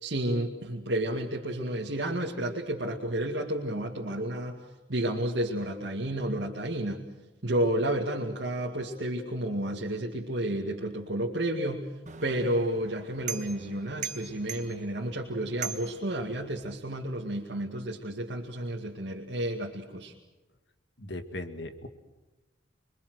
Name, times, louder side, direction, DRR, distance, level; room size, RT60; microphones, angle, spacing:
voice 1, 0.0-4.6 4.9-7.0 7.4-11.9 12.2-20.1, right 1 dB, 65° right, -1 dB, 2.2 m, -31 dB
sound 1, 12.1-16.8, right 7 dB, 40° right, 1.5 m, -41 dB
voice 2, 21.0-21.9, left 1 dB, 65° left, 8 dB, 2.2 m, -38 dB
27.5 x 23.0 x 6.4 m, 1.1 s
head